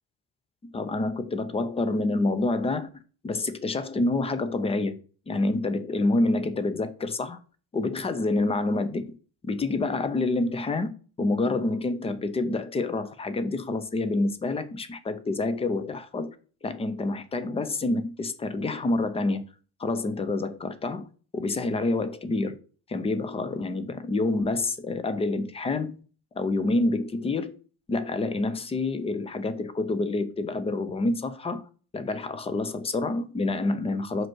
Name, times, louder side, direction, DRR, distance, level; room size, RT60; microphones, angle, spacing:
voice 1, 0.6-2.9 3.2-5.0 5.3-7.4 7.7-9.0 9.4-10.9 11.2-16.3 16.6-19.5 19.8-22.6 22.9-26.0 26.4-27.6 27.9-31.6 31.9-34.3, left 2 dB, 15° left, 0.3 m, -27 dB
5.2 x 4.5 x 6.0 m
cardioid pair, 175°, 45 cm